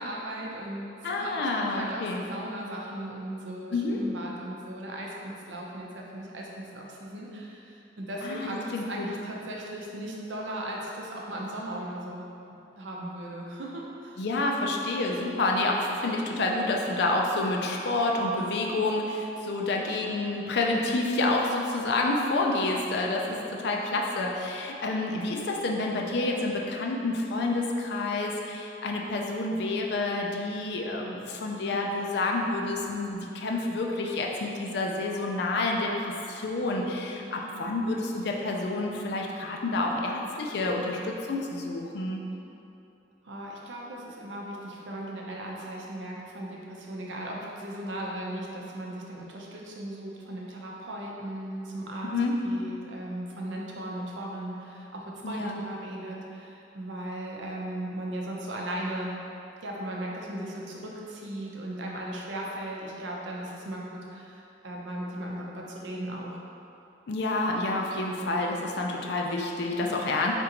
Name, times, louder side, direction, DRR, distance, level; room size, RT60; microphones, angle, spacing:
voice 1, 0.0-0.9 1.2-12.2 12.8-14.2 23.2-23.6 37.1-37.5 43.2-52.1 52.4-59.2 59.6-66.3 69.8-70.1, right 1 dB, 85° right, -2 dB, 0.6 m, -37 dB
voice 2, 1.0-2.2 3.7-4.0 8.2-9.1 14.2-42.2 52.0-52.4 55.2-55.6 67.1-70.3, left 2 dB, 65° left, 0 dB, 0.4 m, -29 dB
3.8 x 3.6 x 2.9 m, 2.8 s
head